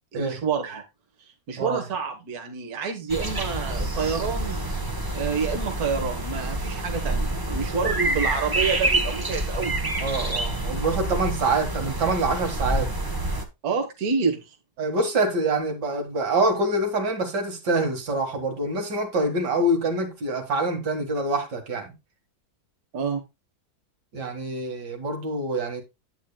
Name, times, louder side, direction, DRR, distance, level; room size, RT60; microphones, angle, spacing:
voice 1, 0.1-0.8 1.5-4.6 5.1-9.8 13.6-14.6 22.9-23.2, right 5 dB, 65° right, 1.7 m, -28 dB
sound 1, 3.1-13.4, right 2 dB, 20° right, 0.8 m, -27 dB
voice 2, 10.0-12.9 14.8-21.9 24.1-25.8, right 2 dB, 90° right, 2.4 m, -25 dB
9.3 x 8.8 x 2.2 m
omnidirectional pair, 1.8 m